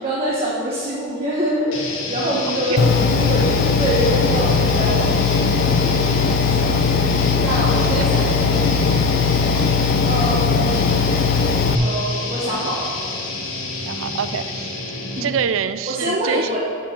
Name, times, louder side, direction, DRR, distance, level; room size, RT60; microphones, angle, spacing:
voice 1, 0.0-6.8 7.4-8.6 10.0-10.9 11.8-12.9 15.1-15.3 15.9-16.6, right 1 dB, 30° right, -7 dB, 1.3 m, -25 dB
sound 1, 1.7-15.4, left 3 dB, 80° left, 1.3 m, -29 dB
Engine, 2.8-11.8, left 5 dB, 50° left, 0.4 m, -19 dB
voice 2, 13.9-14.7 15.2-16.5, right 7 dB, 75° right, 13 dB, 0.4 m, -25 dB
8.3 x 4.6 x 7.1 m, 2.4 s
head